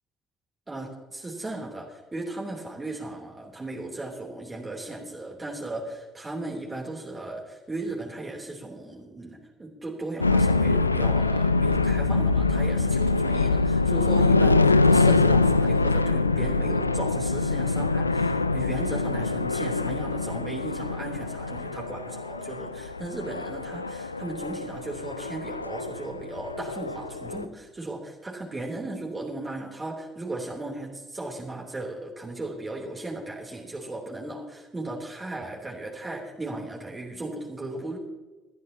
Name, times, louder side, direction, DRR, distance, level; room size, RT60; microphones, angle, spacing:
voice 1, 0.7-38.0, right 2 dB, 20° right, -2 dB, 3.3 m, -36 dB
sound 1, 10.2-27.4, left 3 dB, 85° left, 0.4 m, -24 dB
21.0 x 13.5 x 2.9 m, 1.2 s
figure-of-eight pair, 50°, 0 cm